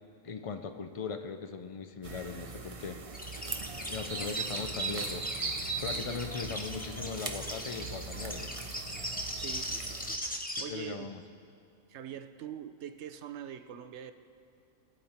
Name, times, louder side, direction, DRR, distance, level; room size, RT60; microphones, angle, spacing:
voice 1, 0.2-3.0 3.9-5.3 5.8-8.5 10.7-11.2, left 5 dB, 50° left, 8 dB, 0.4 m, -39 dB
sound 1, 2.0-10.2, right 4 dB, 35° right, 0.6 m, -39 dB
sound 2, 3.1-10.6, left 1 dB, 10° left, 0.7 m, -39 dB
voice 2, 9.4-11.1 11.9-14.1, right 9 dB, 60° right, 10 dB, 0.9 m, -44 dB
21.5 x 8.9 x 4.3 m, 2.5 s
omnidirectional pair, 1.5 m